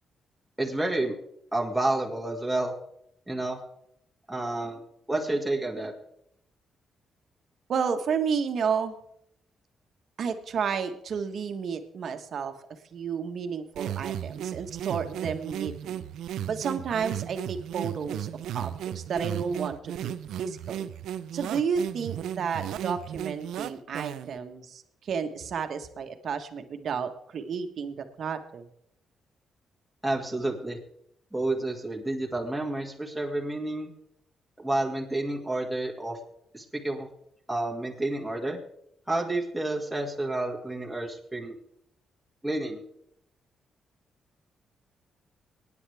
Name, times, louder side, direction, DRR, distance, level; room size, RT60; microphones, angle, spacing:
voice 1, 0.6-1.1 1.5-2.7 3.3-3.6 4.3-4.8 5.1-5.9 30.0-30.8 31.3-33.9 34.6-36.2 36.5-37.1 37.5-38.6 39.1-41.5 42.4-42.8, right 2 dB, 5° right, -1 dB, 2.2 m, -30 dB
voice 2, 7.7-8.9 10.2-12.5 12.9-16.0 16.5-20.1 20.4-20.9 21.3-28.7, right 6 dB, 65° right, 7 dB, 1.4 m, -31 dB
sound 1, 13.8-24.4, right 10 dB, 85° right, 0.6 m, -35 dB
23.5 x 9.7 x 3.5 m, 0.74 s
cardioid pair, 85°, 0 cm